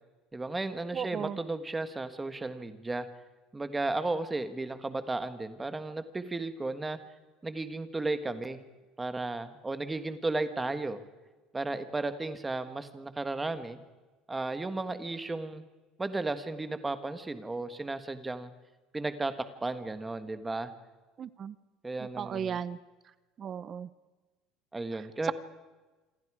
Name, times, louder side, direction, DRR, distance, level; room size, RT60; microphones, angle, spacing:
voice 1, 0.3-3.1 3.5-7.0 7.4-8.6 9.0-11.0 11.5-13.8 14.3-15.6 16.0-18.5 18.9-19.3 19.6-20.7 21.8-22.6 24.7-25.3, right 2 dB, 10° right, 9 dB, 1.4 m, -34 dB
voice 2, 0.9-1.4 21.2-21.5 22.2-22.8 23.4-23.9, right 7 dB, 30° right, 16 dB, 0.7 m, -35 dB
27.0 x 27.0 x 4.9 m, 1.2 s
cardioid pair, 165°, 0 cm